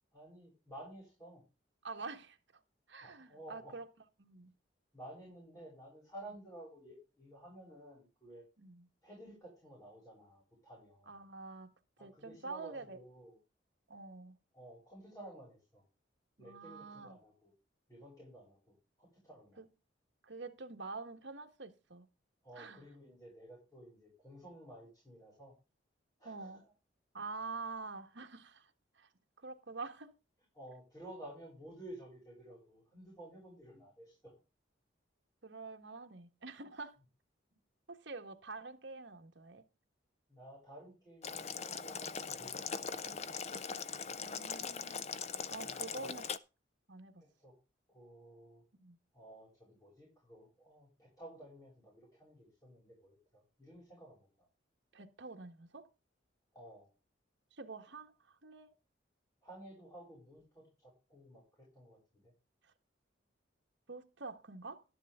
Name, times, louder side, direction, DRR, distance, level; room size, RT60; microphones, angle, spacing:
voice 1, 0.1-1.4 3.0-3.8 4.9-8.5 9.0-11.1 12.0-13.4 14.5-15.8 16.4-17.5 17.9-19.6 22.4-25.5 26.2-26.7 30.5-34.3 40.3-43.2 45.6-46.1 47.2-47.5 47.9-48.6 49.1-54.3 56.5-56.9 59.4-62.3, right 1 dB, 20° left, 7.3 m, -54 dB
voice 2, 1.8-2.4 2.9-3.9 4.2-4.5 8.6-8.9 11.1-11.7 12.0-13.0 13.9-14.4 16.4-17.2 19.6-19.7 20.2-22.1 22.5-22.8 26.2-26.6 27.1-29.1 29.4-30.1 35.4-36.9 37.9-39.6 44.2-45.0 45.5-46.3 46.9-47.2 48.8-49.0 54.9-55.9 57.5-58.7 62.6-62.7 63.9-64.8, right 3 dB, 70° right, 1.5 m, -47 dB
Boiling, 41.2-46.4, left 6 dB, 35° left, 0.5 m, -41 dB
12.5 x 10.5 x 3.7 m
head